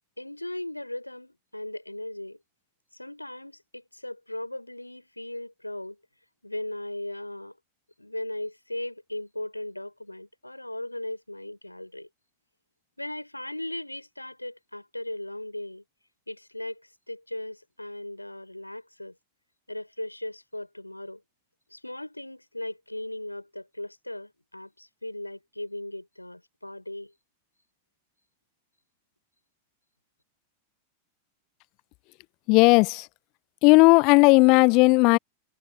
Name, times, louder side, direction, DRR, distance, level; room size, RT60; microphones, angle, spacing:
voice 1, 0.2-2.4 2.9-6.0 6.4-7.6 8.0-12.1 13.0-15.8 16.3-19.2 19.7-21.2 21.7-27.1, left 1 dB, 85° left, 3.8 m, -37 dB
voice 2, 32.5-33.1 33.6-35.2, left 28 dB, 45° left, 0.8 m, -16 dB
figure-of-eight pair, 90°, 0 cm